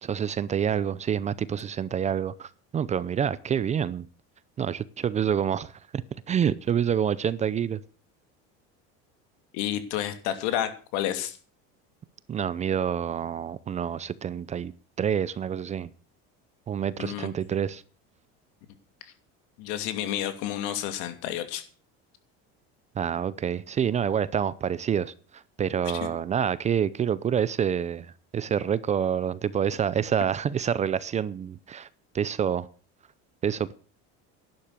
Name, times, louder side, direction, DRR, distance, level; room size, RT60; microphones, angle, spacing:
voice 1, 0.0-4.1 4.6-5.7 6.3-7.8 12.3-14.7 15.0-15.9 16.7-17.8 23.0-25.1 25.6-31.9 32.1-32.7 33.4-33.7, right 8 dB, 25° right, 0.6 m, -27 dB
voice 2, 9.5-11.4 17.0-17.3 19.0-19.1 19.6-21.6 25.8-26.1, left 11 dB, 75° left, 2.8 m, -30 dB
11.5 x 10.5 x 6.7 m
cardioid pair, 150°, 30 cm